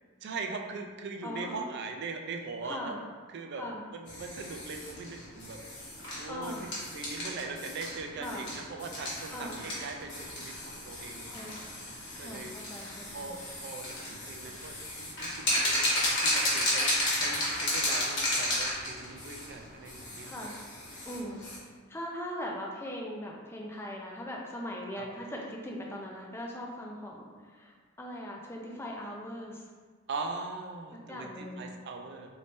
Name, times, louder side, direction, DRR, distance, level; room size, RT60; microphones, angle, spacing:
voice 1, 0.2-2.9 3.3-3.6 3.9-5.6 6.2-11.4 12.2-12.6 13.1-15.9 16.2-20.5 25.0-25.1 30.1-32.3, right 4 dB, 50° right, 3 dB, 0.4 m, -40 dB
voice 2, 1.2-1.7 2.6-3.0 3.6-3.8 6.3-6.7 8.1-8.5 9.3-9.7 11.3-11.6 12.2-13.4 20.3-20.7 21.1-21.5 21.9-29.6 31.1-31.7, left 1 dB, 10° left, -2 dB, 0.4 m, -40 dB
sound 1, 4.1-21.6, left 1 dB, 55° left, 1.2 m, -33 dB
3.4 x 2.7 x 3.1 m, 1.5 s
head